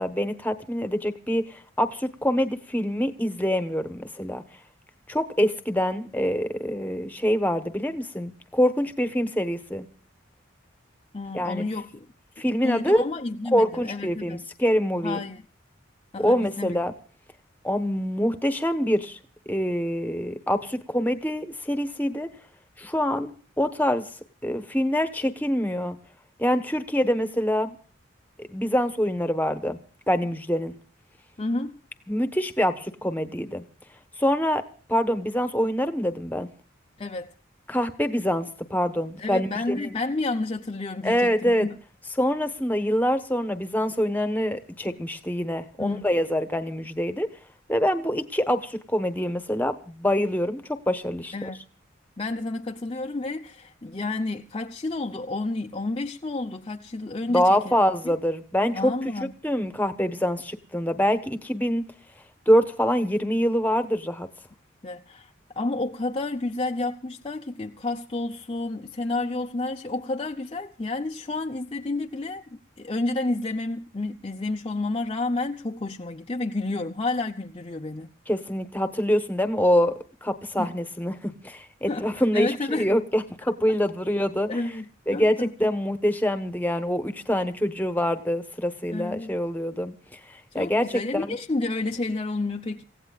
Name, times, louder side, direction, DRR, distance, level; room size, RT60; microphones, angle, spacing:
voice 1, 0.0-4.4 5.1-9.9 11.3-11.6 12.4-13.0 13.5-15.2 16.2-16.9 17.6-19.2 19.5-22.3 22.8-24.1 24.4-26.0 26.4-27.8 28.5-29.8 30.1-30.7 32.1-33.6 34.2-34.6 34.9-36.5 37.7-39.9 41.0-41.7 42.2-47.3 47.7-51.5 57.3-58.9 59.2-61.8 62.5-64.3 78.3-84.5 85.1-91.4, equal, 10° left, 1.1 m, -25 dB
voice 2, 11.1-12.1 12.6-14.4 15.0-15.4 16.1-16.8 31.4-31.8 37.0-37.3 39.2-41.8 45.8-46.0 51.3-51.6 52.2-57.8 58.7-59.3 64.8-78.1 80.6-80.7 81.9-82.9 84.5-85.5 88.9-89.3 90.5-92.8, left 2 dB, 25° left, 0.7 m, -30 dB
28.5 x 16.0 x 2.4 m
head